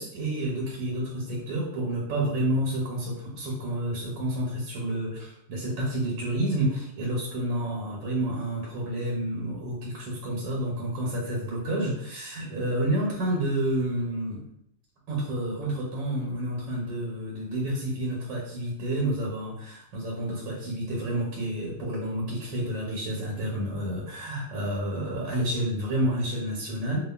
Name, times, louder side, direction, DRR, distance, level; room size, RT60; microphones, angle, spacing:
voice 1, 0.0-14.5 15.1-27.0, right 1 dB, 90° right, -3 dB, 1.4 m, -29 dB
2.7 x 2.4 x 2.2 m, 0.76 s
omnidirectional pair, 2.0 m